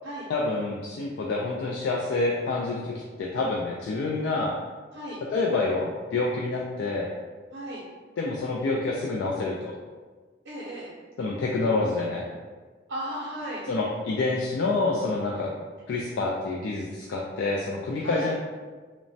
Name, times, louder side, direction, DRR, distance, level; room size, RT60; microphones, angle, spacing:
voice 1, 0.3-4.6 5.3-7.1 8.2-9.7 11.2-12.3 13.7-15.5 15.9-18.4, left 3 dB, 80° left, -2 dB, 0.3 m, -27 dB
voice 2, 7.5-7.8 10.4-10.9 12.9-13.6 15.4-15.5 18.0-18.3, right 1 dB, 90° right, -8 dB, 0.6 m, -35 dB
3.0 x 2.1 x 2.6 m, 1.4 s
head